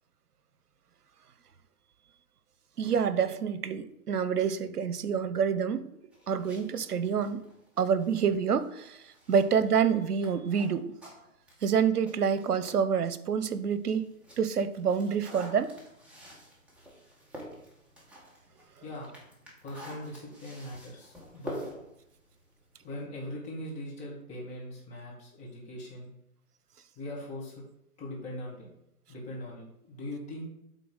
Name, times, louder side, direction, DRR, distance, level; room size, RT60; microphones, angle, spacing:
voice 1, 2.8-5.9 6.3-7.4 7.8-9.0 9.3-10.9 11.6-14.1 14.4-15.7, right 7 dB, 85° right, 0.8 m, -27 dB
sound 1, 6.1-12.9 13.3-23.0, equal, 5° right, 1.2 m, -48 dB
voice 2, 18.8-19.1 19.6-21.6 22.8-26.1 27.0-27.6 28.0-28.7 29.1-30.5, left 1 dB, 15° left, 2.0 m, -40 dB
8.4 x 3.8 x 5.6 m
hypercardioid pair, 145°, 45 cm